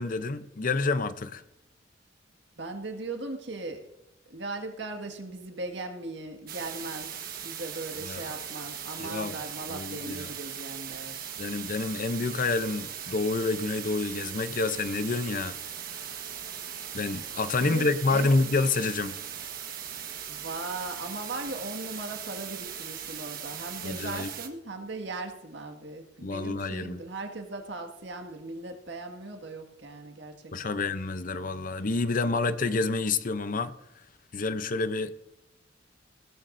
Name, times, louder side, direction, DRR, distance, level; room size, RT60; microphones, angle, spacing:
voice 1, 0.0-1.4 8.0-8.2 9.0-9.4 9.7-10.3 11.4-15.6 16.9-19.2 23.8-24.3 26.2-27.0 30.5-33.7 34.3-35.1, left 3 dB, 45° left, 0.6 m, -28 dB
voice 2, 2.6-3.8 4.3-7.1 7.4-11.3 17.6-18.3 20.3-30.8, right 2 dB, 65° right, 1.9 m, -38 dB
sound 1, 6.5-24.5, right 8 dB, 50° right, 1.4 m, -39 dB
17.0 x 13.5 x 2.6 m
head